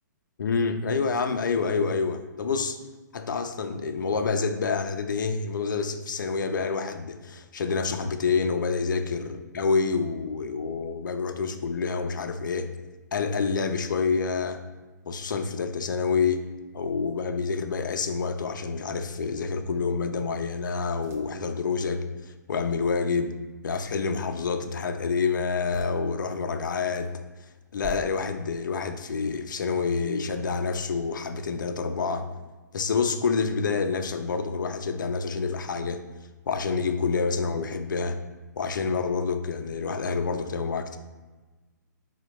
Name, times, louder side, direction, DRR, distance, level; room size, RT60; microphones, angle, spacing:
voice 1, 0.4-2.8 3.1-12.7 13.1-14.6 15.1-16.4 16.7-22.0 22.5-23.3 23.6-27.1 27.7-32.3 32.7-36.0 36.5-38.2 38.6-41.0, left 5 dB, 85° left, 8 dB, 0.4 m, -27 dB
sound 1, 18.4-18.8 19.4-19.5 20.9-21.5 25.6-26.0 26.7-27.1 27.7-28.0, equal, 25° right, 0.5 m, -45 dB
4.2 x 2.1 x 2.9 m, 1.2 s
hypercardioid pair, 140°, 10 cm